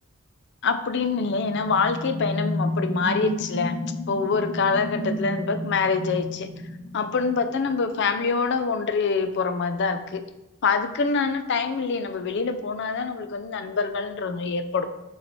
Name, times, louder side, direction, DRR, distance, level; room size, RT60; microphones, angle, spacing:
voice 1, 0.6-3.8 4.1-6.5 6.9-10.2 10.6-14.9, left 4 dB, 55° left, 9 dB, 0.5 m, -25 dB
sound 1, 1.0-7.6, left 1 dB, 15° left, 0.8 m, -31 dB
6.7 x 3.3 x 4.3 m, 0.97 s
head